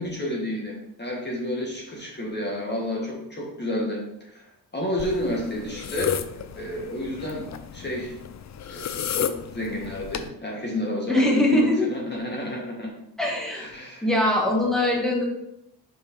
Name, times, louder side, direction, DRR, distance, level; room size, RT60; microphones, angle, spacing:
voice 1, 0.0-4.4 4.7-7.5 7.7-8.2 8.7-12.9 13.5-14.1, left 1 dB, 25° left, -2 dB, 1.6 m, -31 dB
sound 1, 5.0-10.3, left 8 dB, 45° left, 0.5 m, -33 dB
voice 2, 11.1-11.9 13.2-13.7 14.0-15.3, left 1 dB, ahead, -2 dB, 1.8 m, -22 dB
5.6 x 4.3 x 5.2 m, 0.80 s
cardioid pair, 110°, 40 cm